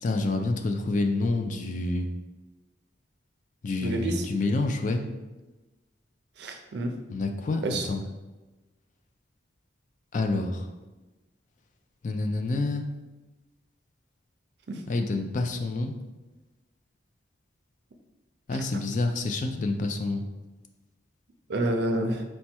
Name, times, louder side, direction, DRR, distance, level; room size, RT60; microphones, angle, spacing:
voice 1, 0.0-2.1 3.6-5.0 7.1-8.0 10.1-10.7 12.0-12.9 14.9-16.0 18.5-20.2, left 2 dB, 40° left, 5 dB, 0.4 m, -28 dB
voice 2, 3.8-4.2 6.4-7.0 7.6-7.9 14.7-14.8 21.5-22.2, right 1 dB, 60° right, 5 dB, 0.5 m, -28 dB
4.3 x 2.2 x 4.3 m, 1.1 s
head